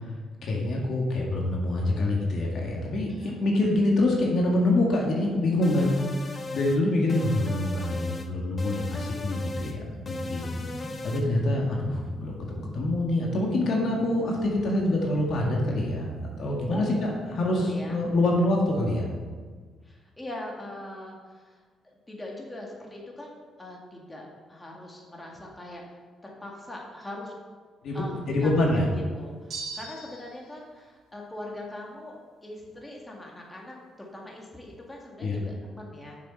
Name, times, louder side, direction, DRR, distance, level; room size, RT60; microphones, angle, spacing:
voice 1, 0.4-5.9 6.5-10.5 11.0-16.1 16.4-19.1 27.8-28.9 35.2-35.4, left 1 dB, 65° left, -1 dB, 1.8 m, -25 dB
voice 2, 3.1-3.4 10.2-10.6 16.7-16.8 17.6-18.0 19.8-21.6 22.1-25.8 26.2-27.3 27.9-32.2 32.4-36.2, left 1 dB, 15° left, -2 dB, 2.0 m, -41 dB
sound 1, 5.6-6.8 7.1-8.3 8.6-9.8 10.1-11.3, left 2 dB, 35° left, 0.8 m, -37 dB
sound 2, 9.4-19.1, right 1 dB, 15° right, 0.8 m, -43 dB
sound 3, 29.5-30.5, right 4 dB, 55° right, 2.0 m, -38 dB
6.9 x 6.8 x 5.6 m, 1.5 s
cardioid pair, 90°, 0 cm